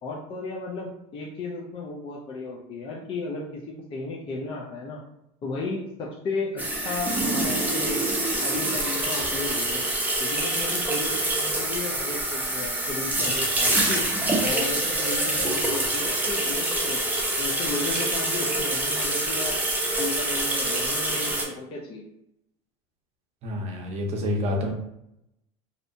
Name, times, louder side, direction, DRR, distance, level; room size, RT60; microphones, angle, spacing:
voice 1, 0.0-5.0 5.4-8.1 8.3-9.9 10.2-14.0 14.4-17.0 17.4-19.6 20.0-22.0, left 3 dB, 35° left, -2 dB, 0.4 m, -34 dB
sound 1, 6.6-21.4, right 1 dB, 10° right, 0.6 m, -26 dB
voice 2, 23.4-24.7, left 1 dB, 45° right, 1 dB, 0.6 m, -28 dB
2.7 x 2.1 x 2.6 m, 0.80 s
supercardioid pair, 120°, 15 cm